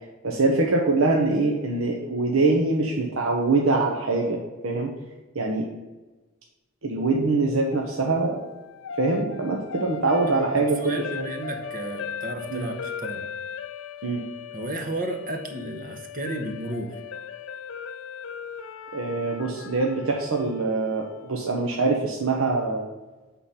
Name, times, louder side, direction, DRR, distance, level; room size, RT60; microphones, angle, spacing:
voice 1, 0.2-4.9 5.3-5.7 6.8-8.4 9.0-11.3 12.5-12.7 14.0-14.2 18.9-22.8, right 3 dB, 80° right, 0 dB, 0.9 m, -24 dB
sound 1, 7.7-21.8, left 7 dB, 65° left, 0.4 m, -38 dB
voice 2, 10.3-13.2 14.5-17.0, right 1 dB, 40° right, 5 dB, 1.0 m, -33 dB
8.3 x 3.9 x 5.7 m, 1.1 s
head